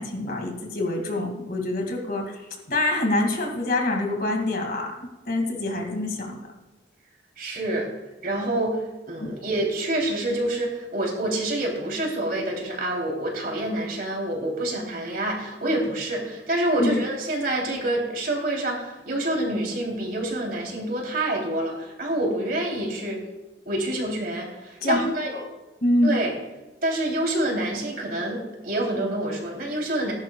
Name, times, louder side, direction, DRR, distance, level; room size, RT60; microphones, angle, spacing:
voice 1, 0.0-2.4 2.7-6.5 9.2-9.3 16.8-17.0 24.8-25.4 25.8-26.1, left 1 dB, 50° left, 2 dB, 2.2 m, -26 dB
voice 2, 7.4-7.9 8.2-8.8 9.1-23.2 23.6-25.3 26.0-26.3 26.8-30.1, right 1 dB, 50° right, 0 dB, 3.1 m, -27 dB
19.5 x 10.5 x 2.3 m, 1.1 s
head